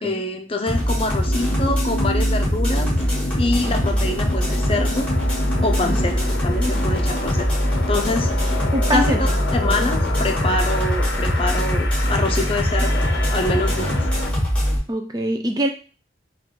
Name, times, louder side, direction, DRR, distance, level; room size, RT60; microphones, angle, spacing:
voice 1, 0.0-2.9 3.4-5.1 5.6-6.2 6.4-7.5 7.9-8.6 8.9-13.9, left 2 dB, 30° left, 4 dB, 0.6 m, -25 dB
sound 1, 0.7-14.8, equal, 5° left, 1.4 m, -22 dB
sound 2, 1.2-14.3, left 2 dB, 85° left, 0.6 m, -30 dB
voice 2, 8.7-9.2 14.9-15.7, right 1 dB, 20° right, 4 dB, 0.4 m, -23 dB
3.7 x 2.4 x 4.5 m, 0.35 s
head